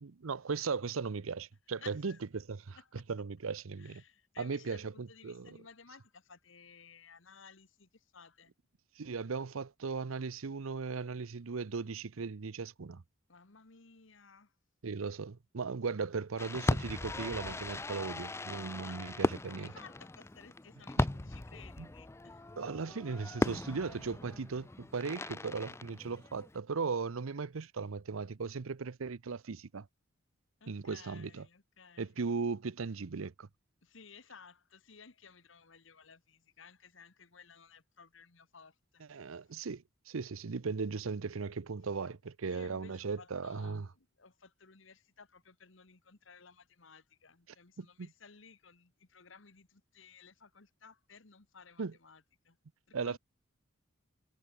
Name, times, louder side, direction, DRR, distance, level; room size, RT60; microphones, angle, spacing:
voice 1, 0.0-4.0 4.4-5.5 9.0-13.0 14.8-19.7 21.0-21.1 21.8-21.9 22.6-29.9 30.7-31.5 32.0-33.5 39.1-43.9 47.8-48.1 51.8-51.9 52.9-53.2, right 4 dB, 90° right, 0.7 m, -37 dB
voice 2, 1.8-2.2 2.7-3.0 3.8-8.5 13.3-14.5 18.8-22.5 30.6-32.2 33.8-39.5 42.0-42.1 42.5-52.6 52.9-53.2, left 5 dB, 70° left, 1.6 m, -57 dB
Fireworks, 16.4-26.6, left 2 dB, 15° left, 0.4 m, -37 dB
head